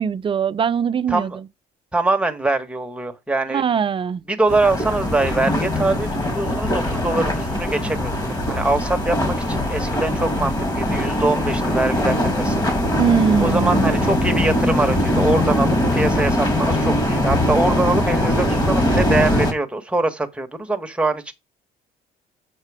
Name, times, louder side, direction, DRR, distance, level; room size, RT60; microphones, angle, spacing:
voice 1, 0.0-1.3 3.5-4.2 13.0-13.8, right 7 dB, 30° right, 0.5 m, -21 dB
voice 2, 1.1-1.4 1.9-3.6 4.3-8.1 8.5-12.6 13.4-21.3, right 2 dB, 5° right, 1.4 m, -23 dB
sound 1, 4.5-19.5, left 1 dB, 25° left, 2.6 m, -21 dB
7.5 x 6.3 x 4.9 m
cardioid pair, 110°, 17 cm